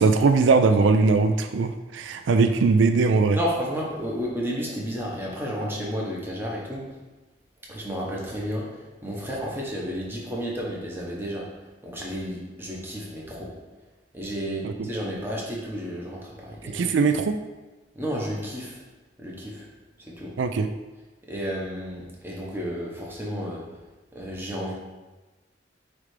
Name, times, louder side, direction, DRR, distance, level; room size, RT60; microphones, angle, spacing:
voice 1, 0.0-3.4 14.6-14.9 16.7-17.3 20.4-20.7, right 4 dB, 85° right, 8 dB, 0.4 m, -20 dB
voice 2, 3.3-7.0 7.7-13.5 14.1-16.9 17.9-18.8 19.2-19.7 20.0-20.4 21.3-23.7 24.1-24.7, equal, 10° right, -3 dB, 1.0 m, -32 dB
8.6 x 3.3 x 3.3 m, 1.2 s
head